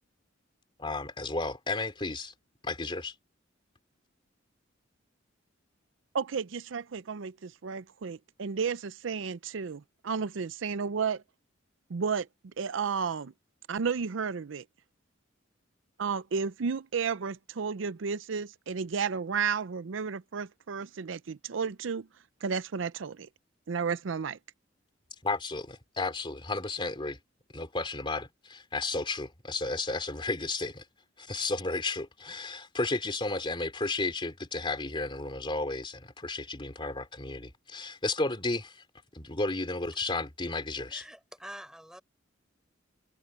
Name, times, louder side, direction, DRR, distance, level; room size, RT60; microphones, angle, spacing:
voice 1, 0.8-2.3 2.6-3.1 25.2-27.2 27.5-30.8 31.2-38.8 39.1-41.0, left 3 dB, 25° left, 2.8 m, -33 dB
voice 2, 6.1-11.2 11.9-13.3 13.7-14.6 16.0-22.1 22.4-23.3 23.7-24.4, right 5 dB, 70° right, 0.5 m, -32 dB
voice 3, 40.9-42.0, equal, 5° right, 5.4 m, -46 dB
head